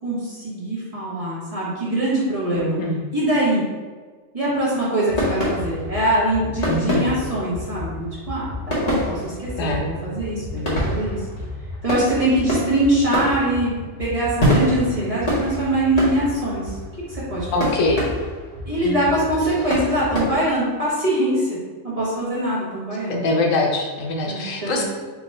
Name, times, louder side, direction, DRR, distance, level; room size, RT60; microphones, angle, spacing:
voice 1, 0.0-2.8 3.1-3.6 4.3-8.5 8.8-11.2 11.8-13.7 14.0-16.8 17.1-17.9 18.7-21.6 21.8-23.3 24.3-24.8, right 1 dB, 30° right, -8 dB, 1.3 m, -23 dB
voice 2, 2.6-3.0 6.7-7.1 9.6-9.9 17.5-18.0 18.8-19.1 23.2-24.8, left 2 dB, 80° left, 1 dB, 1.1 m, -23 dB
sound 1, 5.1-20.2, left 1 dB, 30° left, 1.1 m, -27 dB
3.7 x 2.8 x 4.2 m, 1.4 s
omnidirectional pair, 1.3 m